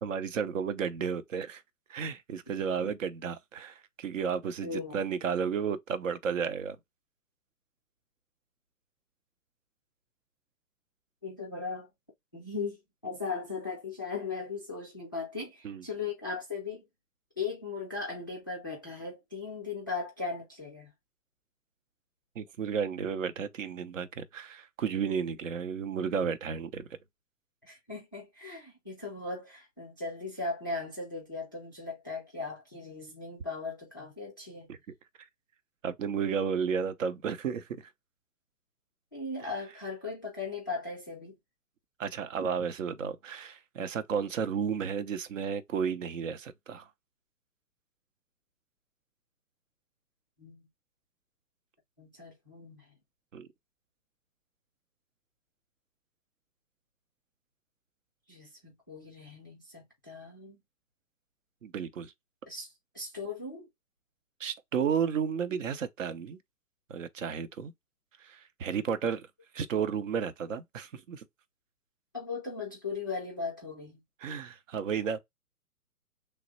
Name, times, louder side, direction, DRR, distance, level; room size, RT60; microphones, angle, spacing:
voice 1, 0.0-1.6 1.9-6.8 15.6-15.8 22.4-26.9 34.7-34.8 35.8-37.9 42.0-46.9 53.3-53.5 61.6-62.1 64.4-66.4 66.9-67.7 68.2-69.3 69.5-71.2 74.2-75.2, right 7 dB, 55° right, 0.7 m, -32 dB
voice 2, 4.6-5.0 11.2-11.9 12.3-12.8 13.0-16.8 17.4-20.9 27.6-34.7 39.1-41.4 50.4-50.7 52.0-52.9 58.3-60.6 62.5-63.7 65.3-65.6 72.1-74.0, left 4 dB, 15° left, 0.4 m, -38 dB
3.2 x 2.0 x 3.9 m
figure-of-eight pair, 130°, 47 cm